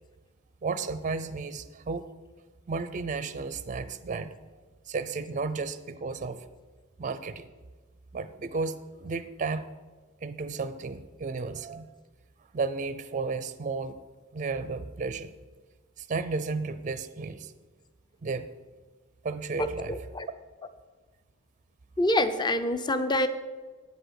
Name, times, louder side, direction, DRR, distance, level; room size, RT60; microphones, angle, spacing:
voice 1, 0.6-2.1 2.7-4.3 4.9-6.5 7.0-7.4 8.1-9.7 10.2-11.9 12.5-14.0 14.3-15.3 16.0-17.5 18.2-18.5 19.2-20.0, right 4 dB, 35° right, 12 dB, 0.4 m, -33 dB
voice 2, 19.6-20.3 22.0-23.3, left 1 dB, 20° left, 11 dB, 0.5 m, -26 dB
9.3 x 7.9 x 6.5 m, 1.4 s
head